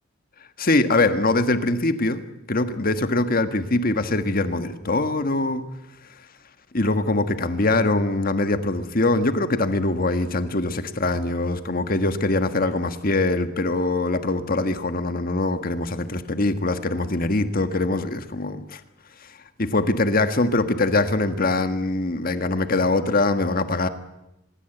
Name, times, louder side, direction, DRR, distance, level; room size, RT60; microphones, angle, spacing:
voice 1, 0.6-2.2 2.5-5.6 6.7-18.8 19.2-19.3 19.6-23.9, left 2 dB, 45° left, 9 dB, 1.6 m, -23 dB
25.0 x 21.0 x 8.0 m, 0.89 s
head